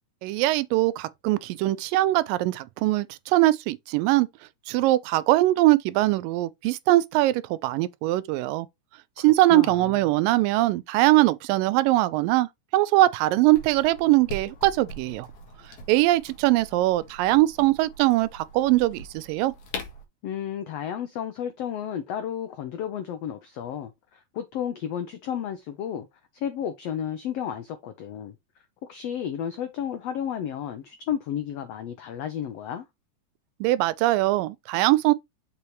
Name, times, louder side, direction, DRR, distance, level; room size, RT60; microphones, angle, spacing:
voice 1, 0.2-4.3 4.7-8.7 9.2-15.3 15.9-19.5 33.6-35.1, right 17 dB, 85° right, 2.3 m, -22 dB
voice 2, 9.5-10.0 20.2-26.1 26.3-28.3 28.9-32.9, left 9 dB, 85° left, 1.4 m, -32 dB
sound 1, 13.5-20.0, left 1 dB, 60° left, 2.8 m, -42 dB
6.9 x 4.7 x 3.1 m
omnidirectional pair, 3.9 m